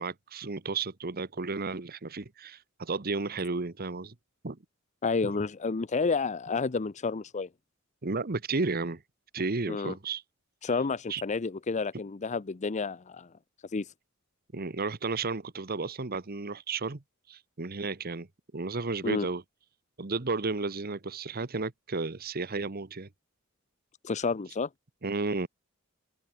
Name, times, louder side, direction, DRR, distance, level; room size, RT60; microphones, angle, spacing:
voice 1, 0.0-4.1 4.4-4.6 5.2-5.3 8.0-9.0 9.3-10.2 11.1-11.2 14.5-17.0 17.3-18.3 18.5-19.4 20.0-23.1 25.0-25.5, right 3 dB, 45° right, 1.2 m, -33 dB
voice 2, 5.0-7.5 9.7-9.9 10.6-13.3 13.6-13.9 19.0-19.3 24.0-24.7, left 4 dB, 35° left, 0.6 m, -30 dB
open air
head